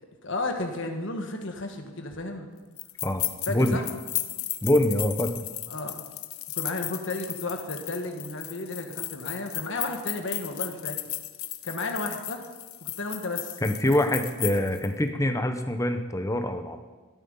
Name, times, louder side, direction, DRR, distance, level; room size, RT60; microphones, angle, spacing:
voice 1, 0.2-2.5 3.5-3.9 5.7-6.0 6.5-11.0 11.6-12.4 12.8-13.6, left 2 dB, 55° left, 4 dB, 1.6 m, -33 dB
sound 1, 2.8-14.9, left 16 dB, 70° left, 0.8 m, -35 dB
voice 2, 3.0-3.8 4.6-5.5 13.6-16.8, left 1 dB, 15° left, 7 dB, 0.9 m, -25 dB
13.0 x 12.5 x 5.5 m, 1.3 s
head